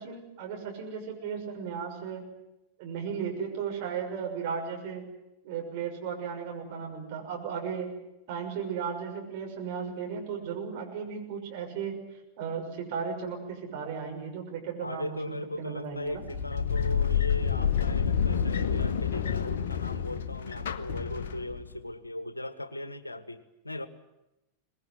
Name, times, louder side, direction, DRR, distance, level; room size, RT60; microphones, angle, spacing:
voice 1, 0.0-2.2 2.8-5.0 5.4-7.9 8.3-11.9 12.4-16.2, right 6 dB, 50° right, 2 dB, 6.3 m, -35 dB
voice 2, 14.8-23.9, left 1 dB, 80° left, 13 dB, 1.5 m, -38 dB
sound 1, 16.1-21.7, left 7 dB, 60° left, 1.3 m, -28 dB
24.0 x 20.0 x 9.5 m, 0.93 s
figure-of-eight pair, 90°, 0 cm